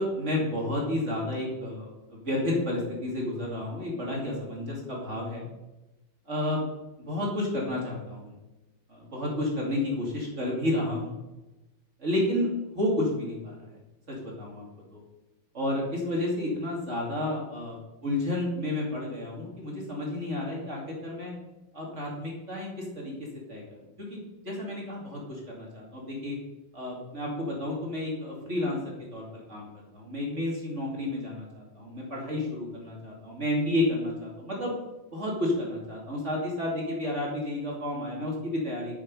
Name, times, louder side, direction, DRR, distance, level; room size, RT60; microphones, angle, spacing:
voice 1, 0.0-5.5 6.3-6.6 7.0-8.4 8.9-11.2 12.0-12.5 12.7-13.8 14.1-14.6 14.9-15.0 15.5-17.8 18.0-21.3 21.7-23.1 23.5-26.4 26.7-34.7 35.1-39.0, left 1 dB, 35° right, -2 dB, 2.8 m, -31 dB
11.0 x 6.8 x 5.4 m, 1.0 s
omnidirectional pair, 2.3 m